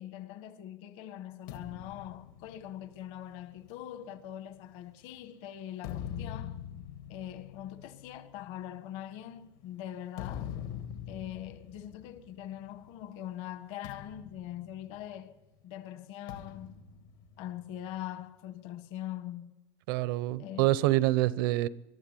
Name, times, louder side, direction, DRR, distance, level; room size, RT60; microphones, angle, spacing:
voice 1, 0.0-6.6 7.1-10.5 11.1-15.4 15.6-16.8 17.4-19.5 20.4-20.8, left 12 dB, 55° left, 1.3 m, -42 dB
sound 1, 1.5-5.1 5.6-13.0 13.3-13.5 13.8-15.5 16.3-18.0, left 9 dB, 80° left, 2.6 m, -44 dB
voice 2, 19.9-21.7, right 17 dB, 85° right, 0.8 m, -26 dB
21.5 x 12.0 x 9.9 m
cardioid pair, 170°, 11 cm